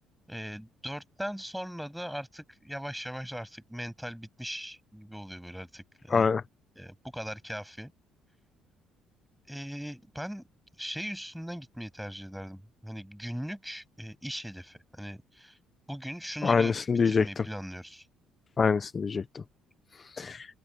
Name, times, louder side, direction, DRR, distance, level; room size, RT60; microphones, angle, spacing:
voice 1, 0.3-6.3 6.8-7.9 9.5-10.5 10.8-15.6 15.9-18.1, equal, ahead, 7.7 m, -39 dB
voice 2, 6.1-6.4 16.4-17.4 18.6-19.4 20.0-20.5, left 5 dB, 30° left, 0.8 m, -26 dB
open air
cardioid pair, 115°, 0 cm